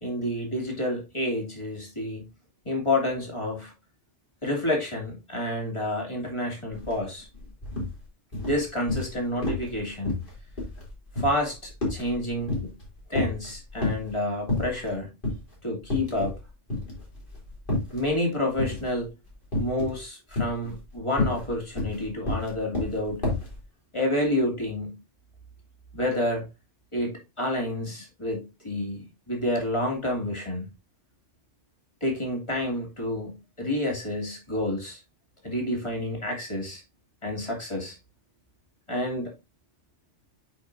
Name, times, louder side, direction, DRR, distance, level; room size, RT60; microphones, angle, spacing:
voice 1, 0.0-2.3 2.6-3.7 4.4-7.3 8.4-10.2 11.2-12.7 13.1-15.1 15.6-16.4 17.9-19.1 19.6-23.3 23.9-25.0 25.9-26.5 26.9-30.7 32.0-35.0 35.4-36.8 37.2-38.0 38.9-39.3, left 1 dB, 25° left, 2.7 m, -29 dB
sound 1, 6.7-6.9 7.2-7.9 8.3-9.2 9.4-9.8 10.0-12.8 13.1-14.1 14.5-14.9 15.2-15.4 15.8-16.4 16.7-18.0 18.6-19.0 19.5-20.0 20.3-23.5, left 2 dB, 45° left, 3.5 m, -29 dB
8.7 x 5.3 x 2.6 m
omnidirectional pair, 1.2 m